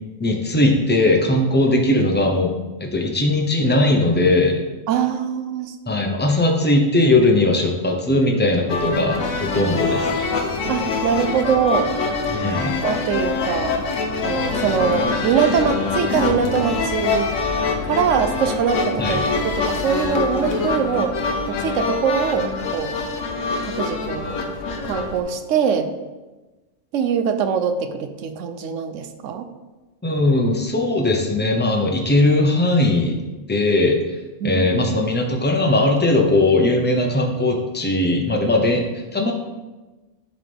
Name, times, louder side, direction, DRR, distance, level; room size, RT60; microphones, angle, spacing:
voice 1, 0.2-2.5 2.8-4.6 5.9-10.3 12.3-12.7 19.0-19.3 30.0-33.2 33.5-34.0 34.4-38.8 39.1-39.3, left 2 dB, 10° left, 1 dB, 0.6 m, -19 dB
voice 2, 4.9-5.7 10.6-11.9 12.8-13.7 14.2-17.3 17.9-21.1 21.5-22.9 23.6-24.4 24.8-25.9 26.9-29.5 34.4-35.0, right 7 dB, 80° right, 8 dB, 1.0 m, -23 dB
sound 1, 8.7-25.2, left 4 dB, 85° left, 1.2 m, -24 dB
10.5 x 4.0 x 3.4 m, 1.2 s
omnidirectional pair, 1.3 m